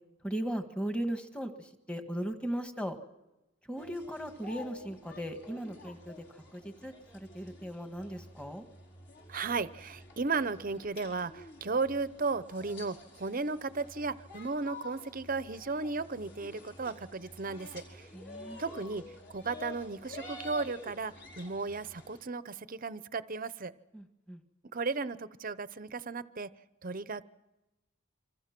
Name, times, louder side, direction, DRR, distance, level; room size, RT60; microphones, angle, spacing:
voice 1, 0.2-3.0 3.7-6.2 6.5-8.7 18.1-18.6 23.9-24.4, equal, 5° left, 6 dB, 1.7 m, -37 dB
sound 1, 3.8-22.2, left 2 dB, 50° left, 5.0 m, -50 dB
voice 2, 9.3-18.1 18.6-19.0 19.3-23.7 24.7-26.5 26.8-27.2, right 4 dB, 40° right, 14 dB, 0.8 m, -35 dB
27.5 x 26.0 x 6.0 m, 1.0 s
head